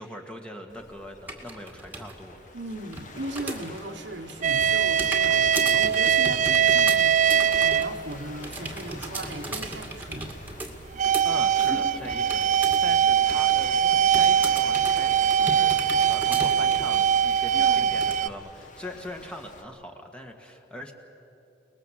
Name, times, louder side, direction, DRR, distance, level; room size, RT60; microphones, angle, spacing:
voice 1, 0.0-2.4 11.2-20.9, equal, 5° left, 3 dB, 1.9 m, -41 dB
Waves surf, 0.7-19.6, left 2 dB, 45° left, 1.9 m, -48 dB
sound 1, 1.3-2.1 2.5-3.9 4.2-12.9 13.2-13.7 14.1-17.1 17.5-17.6 18.0-18.2, right 2 dB, 10° right, 2.1 m, -36 dB
voice 2, 2.5-10.4 17.5-18.1, right 2 dB, 75° right, 5 dB, 1.4 m, -38 dB
sound 2, 4.4-8.0 8.5-8.6 9.2-9.3 10.7-18.3, right 9 dB, 40° right, 0.5 m, -22 dB
30.0 x 20.0 x 7.5 m, 2.9 s
head